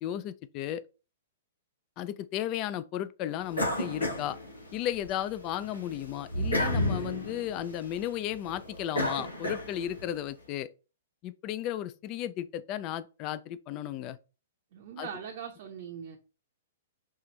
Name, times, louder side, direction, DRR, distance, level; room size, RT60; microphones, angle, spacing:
voice 1, 0.0-0.8 2.0-4.4 4.7-10.7 11.2-14.2 15.0-15.1, left 11 dB, 35° left, 0.3 m, -34 dB
sound 1, 3.5-5.1 5.5-10.1, left 1 dB, 85° left, 1.5 m, -32 dB
voice 2, 14.7-16.2, right 8 dB, 50° right, 0.7 m, -41 dB
5.5 x 2.4 x 3.1 m
figure-of-eight pair, 110°, 0 cm